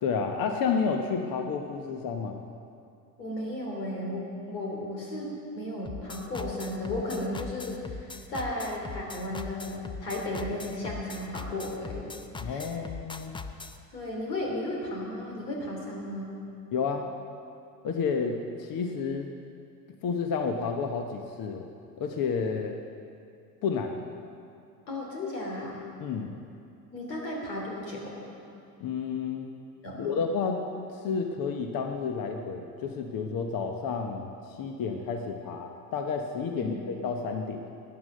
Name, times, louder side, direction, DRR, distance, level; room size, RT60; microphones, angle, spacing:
voice 1, 0.0-2.4 12.4-13.3 16.7-17.1 17.8-19.3 20.0-21.7 22.0-22.8 23.6-23.9 26.0-26.3 28.8-29.5 30.0-30.6 30.9-37.7, left 5 dB, 45° left, 4 dB, 1.1 m, -30 dB
voice 2, 3.2-8.0 8.3-12.1 12.4-12.6 13.9-16.3 24.9-25.8 26.9-28.3 29.8-30.2 36.5-36.7, left 1 dB, 85° left, -2 dB, 3.1 m, -34 dB
sound 1, 5.9-13.8, left 4 dB, 10° left, 0.6 m, -40 dB
13.0 x 9.6 x 6.5 m, 2.5 s
hypercardioid pair, 70°, 49 cm